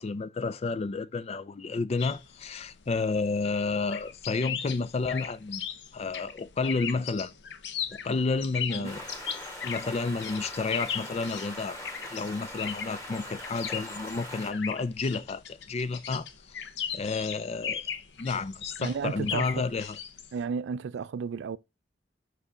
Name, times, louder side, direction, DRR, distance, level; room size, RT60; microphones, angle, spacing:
voice 1, 0.0-5.6 5.9-7.3 7.9-9.1 9.6-11.8 12.1-16.7 16.9-17.9 18.2-20.0, left 4 dB, 35° left, 0.4 m, -31 dB
sound 1, 2.0-20.4, left 8 dB, 70° left, 0.7 m, -38 dB
sound 2, 8.8-14.5, left 1 dB, 15° left, 1.9 m, -41 dB
voice 2, 18.8-19.6 20.3-21.6, right 6 dB, 75° right, 0.3 m, -33 dB
5.5 x 5.0 x 4.9 m
head